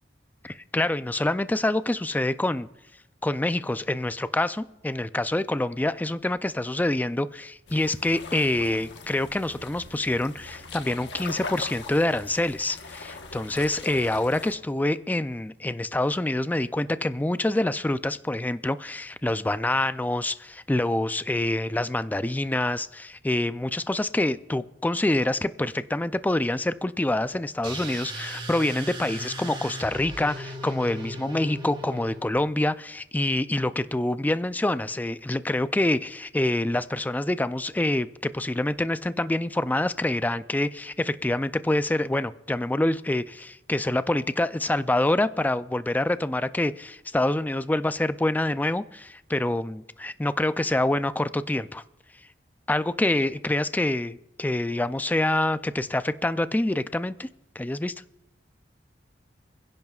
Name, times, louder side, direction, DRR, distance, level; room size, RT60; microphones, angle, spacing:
voice 1, 0.4-2.7 3.2-51.8 52.7-57.3 57.6-57.9, left 1 dB, 10° left, 13 dB, 0.3 m, -26 dB
sound 1, 7.7-14.5, left 4 dB, 75° left, 1.2 m, -41 dB
sound 2, 27.6-32.4, right 1 dB, 30° right, 1.7 m, -38 dB
28.5 x 10.5 x 2.4 m, 0.90 s
head